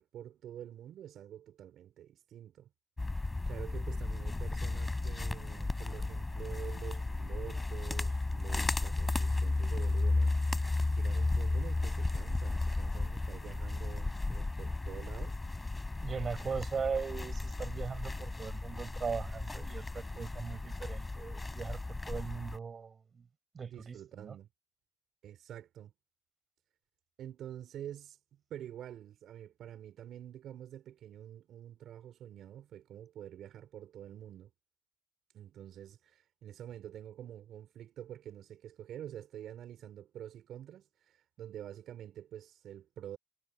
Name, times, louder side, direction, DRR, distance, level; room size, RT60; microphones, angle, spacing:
voice 1, 0.0-2.7 3.1-10.7 10.9-15.4 23.6-24.5 25.2-25.9 27.2-34.5 35.3-43.2, right 11 dB, 75° right, 5.3 m, -47 dB
sound 1, 3.0-22.6, left 2 dB, 20° left, 6.1 m, -34 dB
voice 2, 16.0-23.3 23.5-24.4, right 6 dB, 40° right, 7.9 m, -39 dB
cardioid pair, 90°, 0 cm